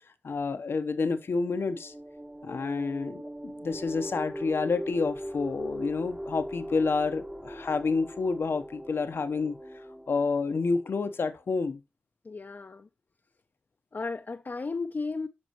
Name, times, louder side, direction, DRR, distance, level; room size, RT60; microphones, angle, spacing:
voice 1, 0.2-1.9 2.4-9.6 10.1-11.8, left 4 dB, 85° left, 1.0 m, -29 dB
sound 1, 1.2-11.5, equal, 15° right, 1.2 m, -41 dB
voice 2, 12.2-12.9 13.9-15.3, left 4 dB, 55° left, 0.6 m, -34 dB
9.7 x 5.6 x 3.1 m
cardioid pair, 55°, 4 cm